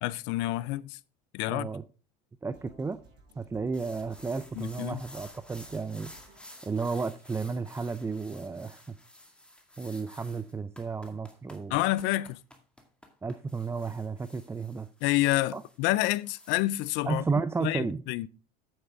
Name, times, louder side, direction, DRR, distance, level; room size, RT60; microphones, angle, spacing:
voice 1, 0.0-1.0 1.3-1.7 4.6-5.0 11.7-12.4 15.0-17.2 17.6-18.3, left 17 dB, 60° left, 0.5 m, -28 dB
voice 2, 1.5-1.8 2.4-3.0 3.4-6.1 6.6-8.8 9.8-11.8 13.2-14.9 15.5-15.6 17.0-18.0, right 4 dB, 10° right, 0.4 m, -33 dB
sound 1, 2.5-8.5, right 3 dB, 55° right, 5.4 m, -59 dB
sound 2, 3.7-16.9, left 1 dB, 5° left, 2.1 m, -52 dB
8.9 x 7.9 x 3.6 m
supercardioid pair, 95°, 21 cm